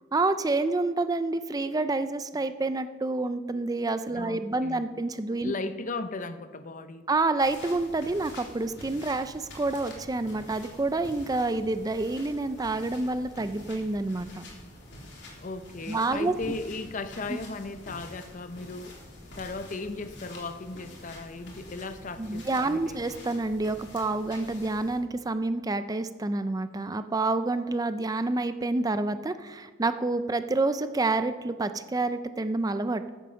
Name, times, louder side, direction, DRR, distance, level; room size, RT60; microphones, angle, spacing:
voice 1, 0.1-5.5 7.1-14.5 15.9-16.3 17.3-17.4 22.2-33.1, right 2 dB, 20° right, 11 dB, 0.4 m, -28 dB
voice 2, 4.1-4.8 5.4-7.1 15.4-18.9 19.3-23.0, left 3 dB, 40° left, 11 dB, 0.7 m, -36 dB
sound 1, 7.4-25.0, left 1 dB, 60° left, 3.5 m, -47 dB
14.5 x 8.5 x 6.4 m, 1.5 s
head